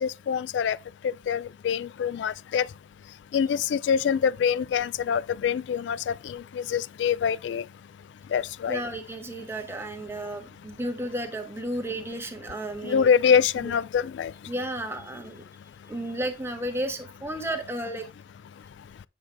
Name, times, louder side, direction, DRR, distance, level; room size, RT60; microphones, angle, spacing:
voice 1, 0.0-0.8 1.0-2.7 3.3-7.6 8.3-8.8 12.8-14.3, left 7 dB, 85° left, 0.3 m, -25 dB
voice 2, 8.7-13.1 13.6-13.7 14.4-15.4 15.9-18.0, right 1 dB, 15° right, 1.4 m, -33 dB
8.5 x 6.1 x 3.4 m
head